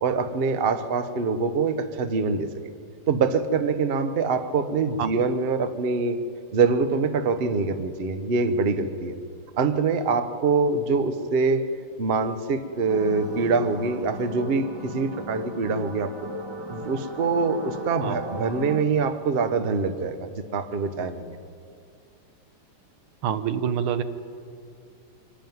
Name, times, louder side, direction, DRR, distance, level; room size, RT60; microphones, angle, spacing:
voice 1, 0.0-2.5 3.1-6.2 6.5-9.2 9.6-11.6 12.0-16.1 16.7-21.4, right 4 dB, 50° right, 10 dB, 0.6 m, -24 dB
sound 1, 12.9-18.8, equal, 20° right, 0.8 m, -37 dB
voice 2, 23.2-24.0, right 8 dB, 80° right, 11 dB, 1.7 m, -26 dB
25.0 x 11.5 x 9.4 m, 2.4 s
omnidirectional pair, 2.3 m